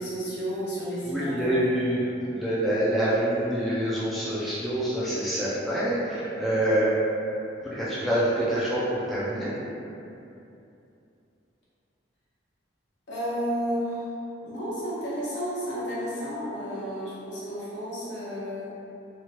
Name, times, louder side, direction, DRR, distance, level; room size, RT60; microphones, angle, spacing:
voice 1, 0.0-1.7 13.1-14.1 14.4-18.7, equal, 70° left, -9 dB, 1.0 m, -32 dB
voice 2, 1.1-2.0 2.3-6.9 7.6-8.8 9.1-9.5, right 1 dB, ahead, -10 dB, 0.4 m, -26 dB
2.9 x 2.4 x 2.9 m, 2.7 s
head